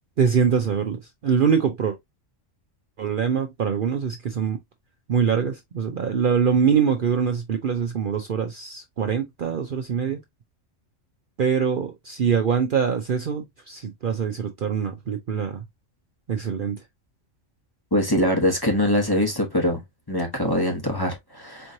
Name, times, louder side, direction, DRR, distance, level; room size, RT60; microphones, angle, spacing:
voice 1, 0.2-2.0 3.0-4.6 5.1-10.2 11.4-15.6 16.3-16.8, right 7 dB, 55° right, 0.7 m, -24 dB
voice 2, 17.9-19.8 20.1-21.7, left 1 dB, 20° left, 1.0 m, -23 dB
4.4 x 3.1 x 2.6 m
omnidirectional pair, 1.3 m